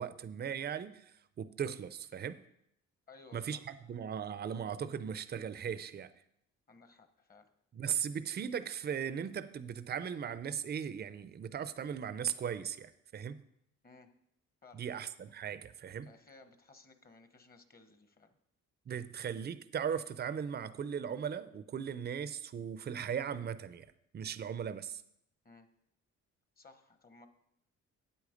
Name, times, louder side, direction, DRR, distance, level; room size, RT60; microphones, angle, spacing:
voice 1, 0.0-2.4 3.3-6.1 7.7-13.4 14.7-16.1 18.9-25.0, right 8 dB, 35° right, 0.5 m, -38 dB
voice 2, 3.1-3.6 6.7-7.5 13.8-14.1 14.6-14.8 16.0-18.4 25.4-25.7 26.6-27.3, left 3 dB, 30° left, 1.1 m, -58 dB
8.8 x 8.5 x 5.1 m
cardioid pair, 90°, 30 cm